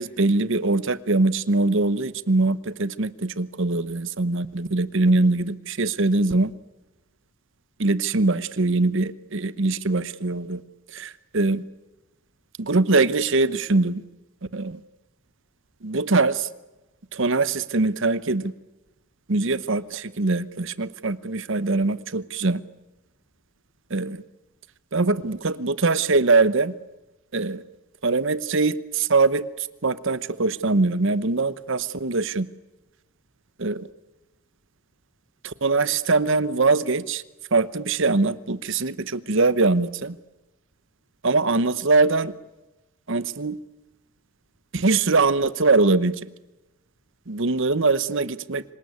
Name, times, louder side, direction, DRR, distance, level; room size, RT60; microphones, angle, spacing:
voice 1, 0.0-6.5 7.8-10.6 10.9-11.6 12.6-14.0 14.5-14.8 15.8-16.5 17.1-18.5 19.3-22.6 23.9-24.2 24.9-26.7 27.3-27.6 28.0-29.5 29.8-32.5 33.6-33.9 35.4-37.2 37.5-40.2 41.2-42.3 43.1-43.6 44.7-46.2 47.3-48.6, right 3 dB, 55° right, 16 dB, 0.9 m, -22 dB
26.0 x 19.0 x 9.6 m, 1.0 s
head